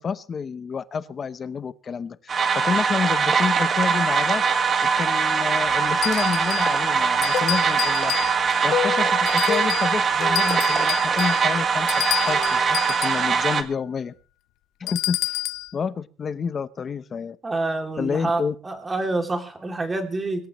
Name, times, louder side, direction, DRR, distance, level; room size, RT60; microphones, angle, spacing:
voice 1, 0.0-4.4 4.8-8.1 8.6-14.1 14.8-15.4 15.7-17.4 18.0-18.5, left 6 dB, 30° left, 14 dB, 0.8 m, -29 dB
sound 1, 2.3-13.6, right 5 dB, 30° right, 1.7 m, -22 dB
sound 2, 5.6-12.7, left 10 dB, 50° left, 3.0 m, -34 dB
sound 3, 6.0-6.8 7.2-8.6 9.2-10.0 10.3-13.3 14.9-15.7, left 15 dB, 80° left, 0.8 m, -30 dB
voice 2, 17.4-20.5, right 2 dB, 15° right, 5 dB, 2.8 m, -27 dB
25.0 x 13.0 x 3.1 m, 0.37 s
cardioid pair, 155°, 0 cm